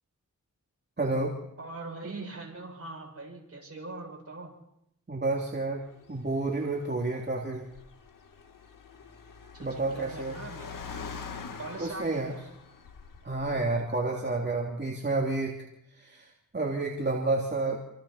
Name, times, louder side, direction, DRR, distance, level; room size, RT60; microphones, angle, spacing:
voice 1, 1.0-1.4 5.1-7.7 9.6-10.4 11.8-12.3 13.2-15.6 15.9-17.8, right 2 dB, 35° right, -1 dB, 3.1 m, -30 dB
voice 2, 1.6-4.5 9.5-10.7 11.6-12.4, right 3 dB, 50° right, 1 dB, 7.4 m, -41 dB
Car, 5.9-13.8, left 5 dB, 80° left, 2.1 m, -45 dB
28.0 x 26.5 x 4.4 m, 0.84 s
wide cardioid pair, 80°, 32 cm